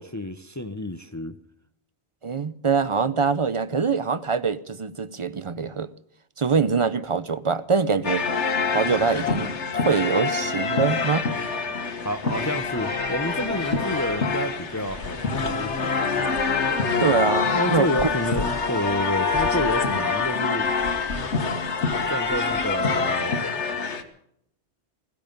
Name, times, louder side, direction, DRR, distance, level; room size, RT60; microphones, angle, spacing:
voice 1, 0.0-1.4 12.0-16.3 17.5-20.7 22.1-23.4, equal, 20° left, 0.6 m, -29 dB
voice 2, 2.2-5.9 6.4-8.2 8.7-11.3 17.0-17.9, right 5 dB, 35° right, 0.5 m, -24 dB
sound 1, 8.0-24.0, left 4 dB, 75° left, 1.7 m, -25 dB
sound 2, 11.9-18.5, right 1 dB, 60° right, 8.4 m, -49 dB
17.0 x 16.0 x 5.2 m
omnidirectional pair, 1.2 m